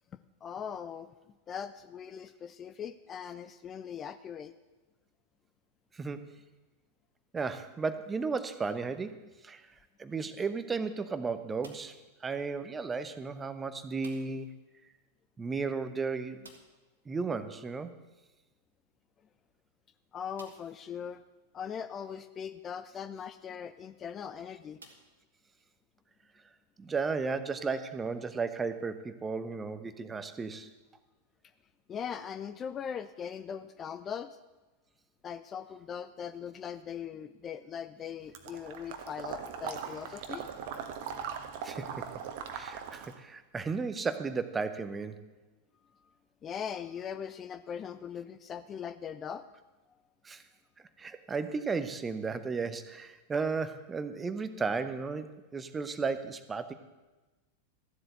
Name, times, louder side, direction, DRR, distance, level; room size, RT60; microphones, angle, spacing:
voice 1, 0.4-1.1 1.5-4.5 20.1-21.2 21.5-24.8 31.9-34.4 35.2-40.5 46.4-49.4, left 7 dB, 25° left, 12 dB, 0.5 m, -40 dB
voice 2, 5.9-6.3 7.3-9.1 9.4-9.6 10.0-14.5 15.4-16.5 17.1-17.9 26.8-30.7 41.6-42.0 42.5-45.2 50.2-50.4 51.0-56.7, right 4 dB, 15° right, 11 dB, 0.9 m, -34 dB
sound 1, 11.6-12.1 14.0-14.5 14.8-14.9 15.2-15.3 16.4-16.9 18.7-18.8 19.4-19.5 20.3-20.8 21.6-21.7 23.7-23.9 24.8-25.7, right 3 dB, 75° right, 1.6 m, -56 dB
Water / Liquid, 38.3-43.2, right 7 dB, 50° right, 1.3 m, -40 dB
14.0 x 7.9 x 7.8 m, 1.2 s
figure-of-eight pair, 90°, 0 cm